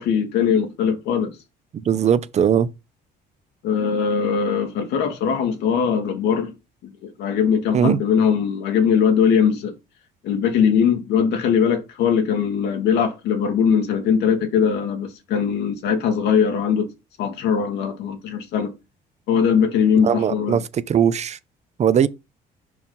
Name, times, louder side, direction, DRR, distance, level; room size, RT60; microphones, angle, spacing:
voice 1, 0.0-1.4 3.6-6.5 6.8-9.7 10.2-16.9 17.2-18.7 19.3-20.6, left 7 dB, 85° left, 1.9 m, -20 dB
voice 2, 1.7-2.7 7.7-8.0 20.0-21.4 21.8-22.1, right 8 dB, 40° right, 0.6 m, -19 dB
5.5 x 4.7 x 5.4 m
cardioid pair, 110°, 17 cm